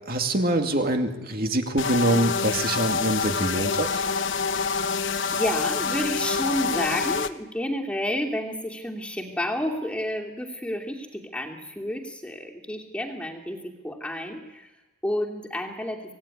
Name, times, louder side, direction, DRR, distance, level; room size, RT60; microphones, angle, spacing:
voice 1, 0.0-4.0, right 1 dB, 45° right, 4 dB, 2.2 m, -25 dB
sound 1, 1.8-7.3, left 5 dB, 55° left, 1.0 m, -26 dB
voice 2, 5.3-14.7 15.0-16.0, left 1 dB, 5° left, 0 dB, 2.6 m, -30 dB
26.0 x 17.5 x 10.0 m, 1.1 s
head